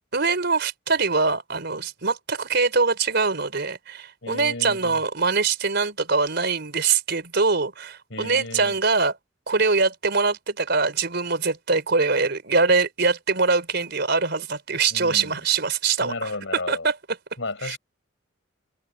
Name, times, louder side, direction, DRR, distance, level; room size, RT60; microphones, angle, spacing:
voice 1, 0.1-9.1 9.5-16.3 16.7-16.9 17.6-17.8, right 4 dB, 55° right, 4.3 m, -23 dB
voice 2, 4.2-5.0 8.1-8.8 14.9-15.4 16.0-16.9 17.4-17.8, left 2 dB, 70° left, 6.8 m, -34 dB
head